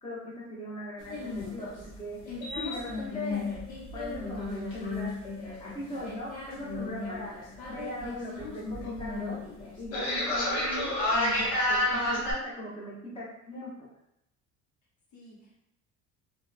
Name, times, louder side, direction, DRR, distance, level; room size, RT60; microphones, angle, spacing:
voice 1, 0.0-3.4 3.9-5.1 5.4-9.4 9.8-13.9, left 1 dB, 15° left, -6 dB, 0.9 m, -39 dB
sound 1, 1.0-12.3, left 1 dB, 90° left, 0.9 m, -32 dB
voice 2, 7.7-8.1 12.1-12.8 15.1-15.7, left 2 dB, 60° left, -4 dB, 0.9 m, -53 dB
2.8 x 2.2 x 2.4 m, 0.80 s
supercardioid pair, 95°, 32 cm